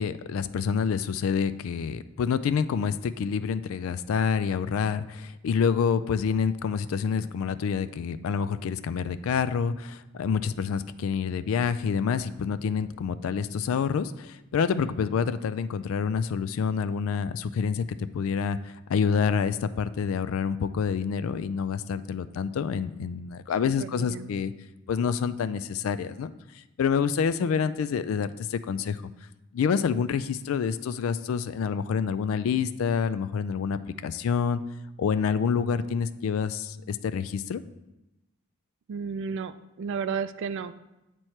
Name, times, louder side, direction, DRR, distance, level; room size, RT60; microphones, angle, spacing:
voice 1, 0.0-17.8 18.1-24.5 24.9-26.3 26.8-29.0 29.5-34.6 35.0-37.6, left 6 dB, 70° left, 13 dB, 0.3 m, -27 dB
voice 2, 23.6-24.3 38.9-40.7, right 6 dB, 60° right, 13 dB, 0.3 m, -33 dB
7.9 x 3.0 x 4.4 m, 0.94 s
head